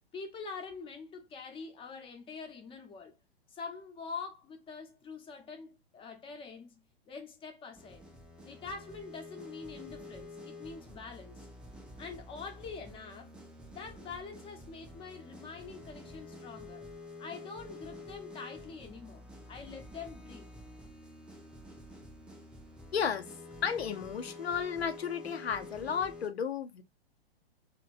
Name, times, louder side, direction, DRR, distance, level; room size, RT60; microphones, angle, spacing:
voice 1, 0.1-3.1 3.5-6.8 7.1-8.0 8.4-11.5 12.0-13.3 13.7-16.9 17.2-20.5, left 5 dB, 15° left, 0.8 m, -45 dB
sound 1, 7.7-26.3, left 2 dB, 5° right, 0.3 m, -49 dB
voice 2, 22.9-23.3 23.6-26.8, left 7 dB, 80° left, 0.8 m, -33 dB
2.9 x 2.9 x 2.5 m
hypercardioid pair, 115°, 31 cm